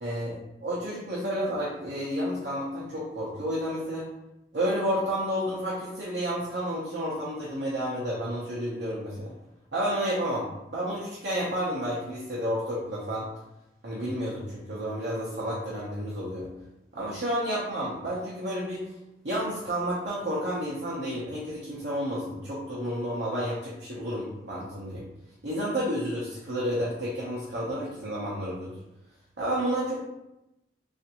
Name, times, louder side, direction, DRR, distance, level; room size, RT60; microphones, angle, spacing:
voice 1, 0.0-4.1 4.5-9.3 9.7-10.5 10.7-13.3 13.8-16.5 16.9-18.9 19.2-25.0 25.4-28.7 29.4-30.0, equal, 65° right, -6 dB, 0.7 m, -31 dB
3.4 x 2.5 x 2.8 m, 0.89 s
head